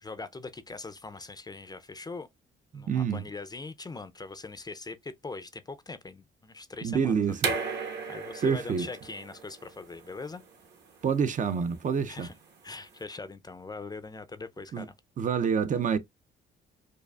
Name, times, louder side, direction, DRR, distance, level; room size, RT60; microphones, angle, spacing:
voice 1, 0.0-2.3 2.7-7.5 8.1-10.4 12.1-12.3 12.6-14.9, left 3 dB, 20° left, 0.4 m, -41 dB
voice 2, 2.7-3.2 6.8-7.5 8.4-8.9 11.0-12.3 14.7-14.9 15.2-16.0, right 6 dB, 40° right, 0.4 m, -27 dB
sound 1, 7.4-13.0, right 5 dB, 60° right, 1.2 m, -36 dB
4.7 x 2.4 x 2.3 m
cardioid pair, 90°, 20 cm